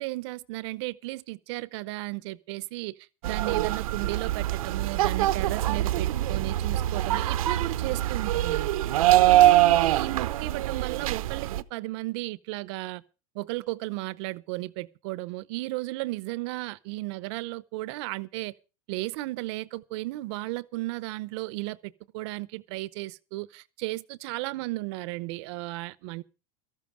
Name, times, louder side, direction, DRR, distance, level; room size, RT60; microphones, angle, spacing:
voice 1, 0.0-3.0 3.3-8.7 9.1-13.0 13.3-18.5 18.9-26.2, right 20 dB, 50° right, 0.7 m, -34 dB
sound 1, 3.2-11.6, right 14 dB, 85° right, 0.8 m, -24 dB
13.5 x 12.5 x 4.9 m
supercardioid pair, 150°, 18 cm